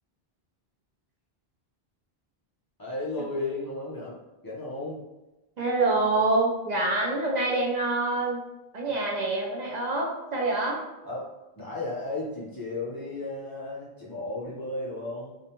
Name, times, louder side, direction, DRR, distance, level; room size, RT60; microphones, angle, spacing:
voice 1, 2.8-4.2 4.4-5.0 11.0-15.4, left 2 dB, 25° left, -7 dB, 0.6 m, -34 dB
voice 2, 5.6-8.4 8.7-10.8, right 2 dB, 55° right, -2 dB, 0.5 m, -26 dB
2.5 x 2.2 x 2.8 m, 1.0 s
omnidirectional pair, 1.1 m